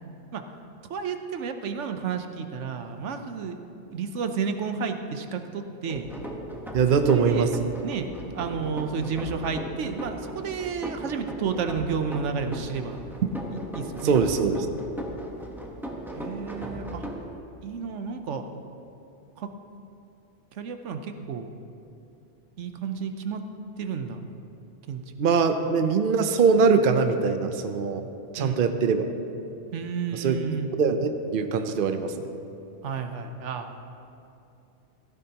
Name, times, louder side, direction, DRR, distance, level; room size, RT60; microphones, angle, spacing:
voice 1, 0.9-3.6 3.9-6.1 6.9-7.5 7.8-13.0 13.7-14.2 16.1-17.0 17.6-18.5 19.4-19.5 20.6-21.5 22.6-23.4 23.8-24.2 24.9-25.0 28.4-28.7 29.7-30.7 32.8-33.7, right 5 dB, 80° right, 7 dB, 1.1 m, -31 dB
sound 1, 5.9-17.2, right 1 dB, ahead, 1.0 m, -37 dB
voice 2, 6.7-7.5 14.0-14.7 25.2-28.0 28.3-29.1 30.1-30.4 30.8-32.1, right 5 dB, 55° right, 7 dB, 0.8 m, -22 dB
16.0 x 13.5 x 2.9 m, 2.7 s
omnidirectional pair, 1.2 m